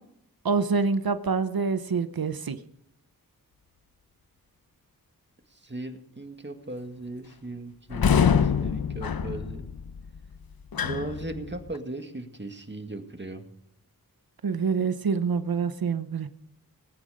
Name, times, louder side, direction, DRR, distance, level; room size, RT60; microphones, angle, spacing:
voice 1, 0.4-2.6 14.4-16.3, right 5 dB, 80° right, 11 dB, 0.9 m, -26 dB
voice 2, 5.5-9.7 10.8-13.4, right 2 dB, 30° right, 6 dB, 1.9 m, -38 dB
sound 1, 7.9-11.8, left 7 dB, 80° left, 0.7 m, -26 dB
19.0 x 9.4 x 5.0 m, 0.78 s
wide cardioid pair, 65°, 36 cm